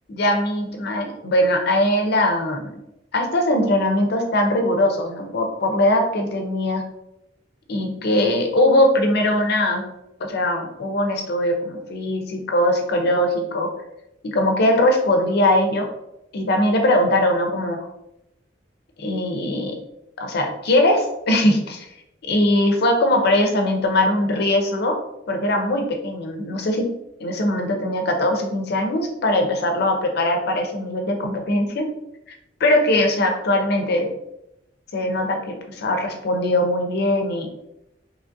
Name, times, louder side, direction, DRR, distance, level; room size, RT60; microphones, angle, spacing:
voice 1, 0.1-2.7 3.1-6.8 7.7-9.8 10.3-13.7 14.2-15.9 16.3-17.9 19.0-19.7 20.2-21.9 22.3-24.9 25.3-26.9 27.2-31.8 32.6-34.1 34.9-37.5, left 1 dB, 60° left, 3 dB, 0.5 m, -21 dB
2.9 x 2.4 x 2.6 m, 0.85 s
head